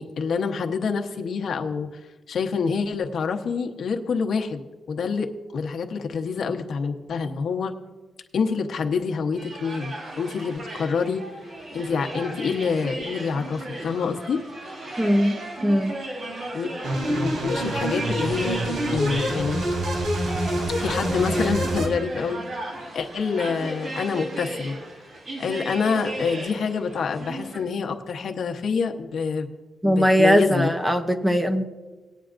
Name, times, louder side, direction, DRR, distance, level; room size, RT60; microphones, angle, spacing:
voice 1, 0.0-2.0 2.3-4.6 4.9-5.3 5.5-7.7 8.3-11.2 11.7-14.4 16.5-16.7 17.1-19.6 20.7-24.7 25.4-29.5 29.8-30.7, left 5 dB, 65° left, 3 dB, 1.0 m, -27 dB
sound 1, 9.4-27.6, right 1 dB, 60° right, 3.9 m, -36 dB
voice 2, 15.0-16.0 29.8-31.6, equal, 10° right, 7 dB, 0.8 m, -20 dB
sound 2, 16.8-21.9, right 1 dB, 85° right, 2.8 m, -26 dB
19.0 x 9.2 x 2.6 m, 1.3 s
cardioid pair, 125°, 0 cm